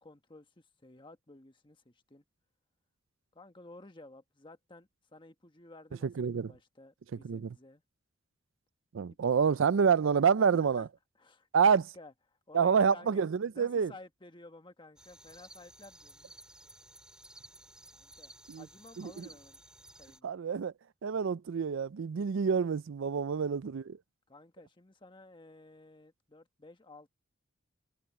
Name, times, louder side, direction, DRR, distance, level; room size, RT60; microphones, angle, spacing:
voice 1, 0.0-2.2 3.3-7.8 9.4-9.5 10.4-10.9 11.2-13.2 13.5-16.3 17.9-19.6 20.0-20.3 23.3-23.4 24.3-27.1, left 2 dB, 25° left, 1.4 m, -54 dB
voice 2, 6.0-6.5 7.2-7.5 8.9-10.9 11.5-11.8 12.5-13.9 18.5-18.6 19.0-19.2 20.2-20.7 21.0-24.0, right 6 dB, 70° right, 0.4 m, -27 dB
sound 1, 15.0-20.2, right 1 dB, 5° right, 3.9 m, -55 dB
head